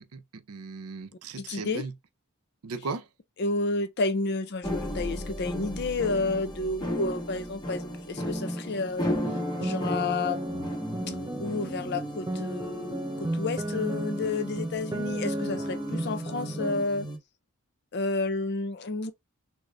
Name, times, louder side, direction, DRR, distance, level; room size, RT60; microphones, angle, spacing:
voice 1, 0.1-1.9 2.6-3.1, right 4 dB, 85° right, 0.6 m, -37 dB
voice 2, 1.4-1.9 3.4-9.1 9.6-10.6 11.1-17.1 17.9-19.1, left 3 dB, 50° left, 0.5 m, -31 dB
sound 1, 4.6-17.2, equal, 20° left, 0.7 m, -35 dB
sound 2, 9.0-16.8, right 1 dB, 15° right, 0.4 m, -34 dB
3.8 x 2.0 x 3.1 m
head